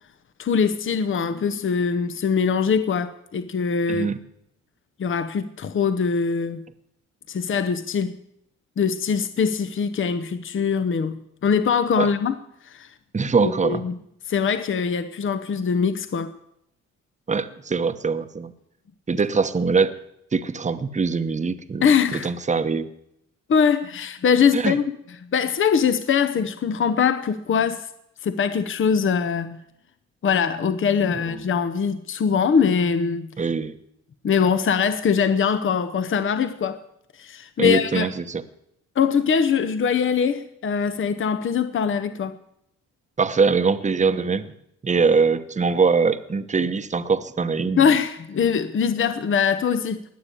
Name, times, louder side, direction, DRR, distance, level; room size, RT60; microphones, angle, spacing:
voice 1, 0.4-4.1 5.0-6.7 7.3-8.2 8.8-12.9 13.4-13.9 14.3-16.3 21.8-22.3 23.5-24.8 25.3-27.9 28.2-29.6 30.2-33.3 34.2-36.8 37.1-38.1 39.0-42.4 47.8-50.0, left 6 dB, 40° left, 0.9 m, -22 dB
voice 2, 13.1-13.8 17.3-18.5 19.1-19.9 20.3-22.9 24.5-24.7 33.4-33.7 37.6-38.4 43.2-44.5 44.8-47.9, right 5 dB, 25° right, 1.1 m, -22 dB
20.0 x 6.9 x 9.9 m
cardioid pair, 90°, 30 cm